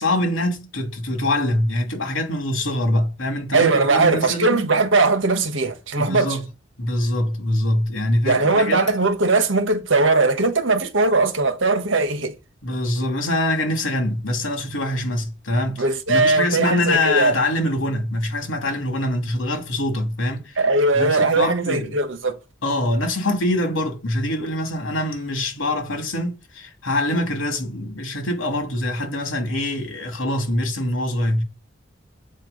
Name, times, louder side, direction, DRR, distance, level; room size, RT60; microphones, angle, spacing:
voice 1, 0.0-4.7 6.0-6.5 6.8-8.8 12.6-20.6 20.9-22.0 22.6-31.4, left 1 dB, 80° left, 2.8 m, -24 dB
voice 2, 3.5-6.4 8.2-12.3 15.8-17.3 20.6-22.4, right 3 dB, 75° right, 1.4 m, -19 dB
8.3 x 4.5 x 6.7 m
head